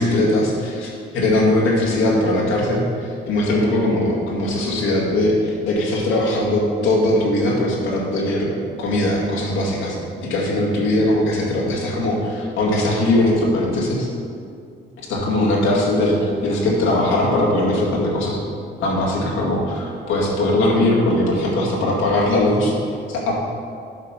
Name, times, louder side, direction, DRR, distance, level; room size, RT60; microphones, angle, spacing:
voice 1, 0.0-8.5 8.8-10.0 10.2-14.1 15.1-18.4 18.8-22.8 23.1-23.3, left 1 dB, 90° left, -3 dB, 2.0 m, -20 dB
7.8 x 5.1 x 6.0 m, 2.3 s
cardioid pair, 90°, 20 cm